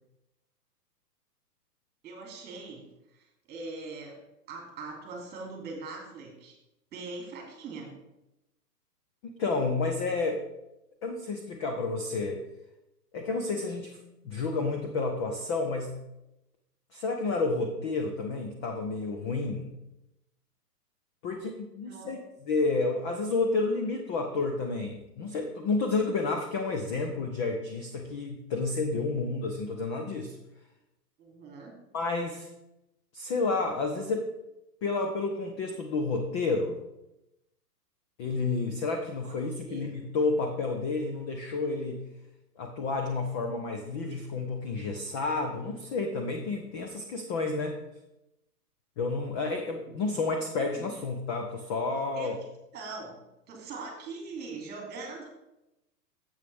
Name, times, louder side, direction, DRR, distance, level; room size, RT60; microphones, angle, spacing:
voice 1, 2.0-2.9 3.1-4.2 4.5-6.6 6.9-7.9 21.3-21.4 21.8-22.1 31.2-31.8 39.2-39.3 39.6-39.9 49.9-50.3 50.7-50.9 52.1-52.4 52.7-53.2 53.5-55.3, right 3 dB, 20° right, 1 dB, 2.9 m, -41 dB
voice 2, 9.2-10.4 11.0-12.4 13.1-14.0 14.2-15.9 16.9-19.7 21.2-22.2 22.5-30.4 31.9-32.5 33.1-34.3 34.8-36.8 38.2-42.0 42.6-47.8 49.0-52.3, left 3 dB, 20° left, 4 dB, 0.5 m, -30 dB
10.5 x 7.8 x 3.5 m, 0.91 s
hypercardioid pair, 130°, 49 cm